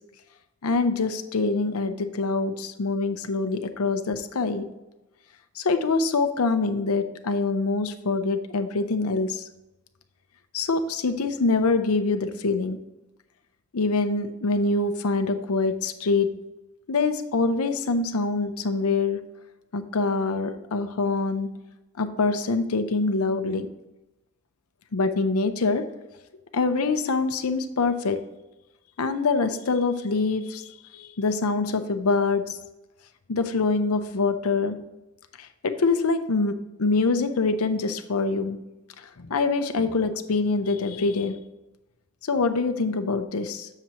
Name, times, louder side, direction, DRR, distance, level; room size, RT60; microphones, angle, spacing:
voice 1, 0.6-4.7 5.6-9.4 10.5-12.8 13.7-16.4 16.9-19.2 19.7-21.5 22.0-23.7 24.9-25.9 26.5-28.2 29.0-32.6 33.3-34.8 35.4-38.6 39.0-41.4 42.2-43.7, left 3 dB, 90° left, 8 dB, 0.6 m, -25 dB
7.4 x 6.7 x 2.9 m, 1.0 s
head